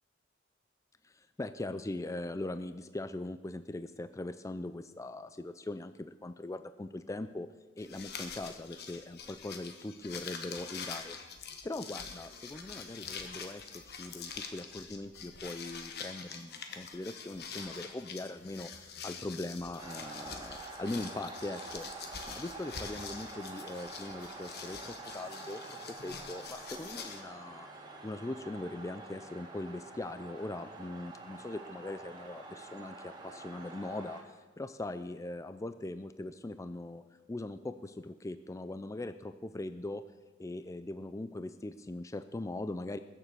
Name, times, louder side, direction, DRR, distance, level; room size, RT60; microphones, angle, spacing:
voice 1, 1.0-11.2 11.6-27.7 28.0-37.0 37.3-40.0 40.4-43.0, left 2 dB, 15° left, 11 dB, 0.4 m, -41 dB
sound 1, 7.8-27.2, left 6 dB, 55° left, 1.3 m, -45 dB
sound 2, 19.8-34.2, right 3 dB, 25° right, 2.1 m, -47 dB
21.0 x 7.3 x 6.7 m, 1.3 s
head